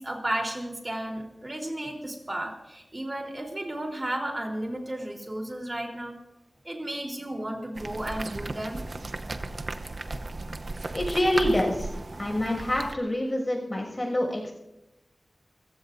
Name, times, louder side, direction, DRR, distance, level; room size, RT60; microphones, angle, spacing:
voice 1, 0.0-6.2 6.6-8.8, right 1 dB, 30° right, 1 dB, 3.8 m, -33 dB
sound 1, 7.8-12.9, right 2 dB, 55° right, 0.8 m, -35 dB
voice 2, 10.9-14.5, left 1 dB, 30° left, 0 dB, 6.7 m, -27 dB
29.5 x 16.0 x 2.7 m, 0.97 s
wide cardioid pair, 85°, 0 cm